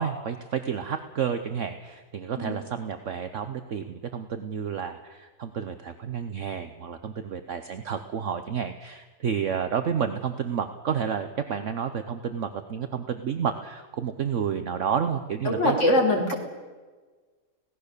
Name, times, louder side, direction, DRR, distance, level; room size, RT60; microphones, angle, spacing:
voice 1, 0.0-15.8, right 7 dB, 55° right, 9 dB, 1.2 m, -30 dB
voice 2, 15.4-16.3, left 1 dB, 50° left, 0 dB, 4.0 m, -22 dB
25.0 x 18.0 x 6.8 m, 1.4 s
omnidirectional pair, 1.6 m